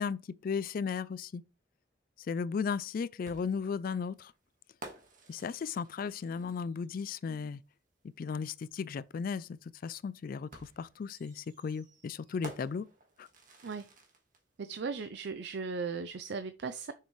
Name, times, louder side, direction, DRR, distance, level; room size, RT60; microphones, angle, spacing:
voice 1, 0.0-1.4 2.2-4.3 5.3-7.6 8.2-12.9 13.2-13.3, left 5 dB, 50° left, 0.3 m, -35 dB
sound 1, 3.2-6.9 8.4-8.5 10.5-14.4, right 2 dB, 50° right, 1.6 m, -52 dB
voice 2, 14.6-16.9, right 4 dB, 65° right, 0.5 m, -37 dB
6.6 x 6.6 x 3.2 m
head